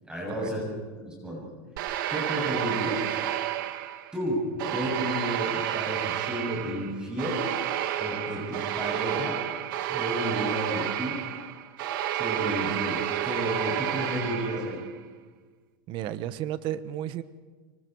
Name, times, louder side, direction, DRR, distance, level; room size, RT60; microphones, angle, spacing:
voice 1, 0.0-0.6 1.0-1.5 2.1-3.0 4.1-7.5 8.0-9.4 9.9-11.2 12.1-14.9, equal, 5° right, -3 dB, 7.6 m, -32 dB
sound 1, 1.8-4.2 4.6-14.9, right 11 dB, 65° right, 1.8 m, -30 dB
voice 2, 15.9-17.2, right 12 dB, 40° right, 13 dB, 1.2 m, -33 dB
25.0 x 24.5 x 4.7 m, 1.4 s
supercardioid pair, 135°, 12 cm